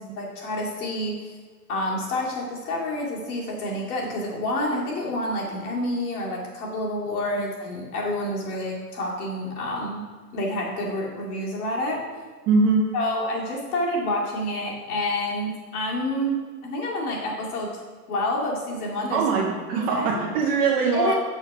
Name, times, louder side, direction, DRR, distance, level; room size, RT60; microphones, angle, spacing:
voice 1, 0.2-1.3 1.7-10.0 10.3-12.0 12.9-17.8 18.1-19.2 19.7-20.2 20.9-21.1, left 1 dB, 65° left, -3 dB, 2.4 m, -28 dB
voice 2, 12.5-13.0 19.1-21.1, right 4 dB, 20° right, 0 dB, 0.4 m, -22 dB
6.7 x 6.0 x 4.8 m, 1.5 s
hypercardioid pair, 125°, 47 cm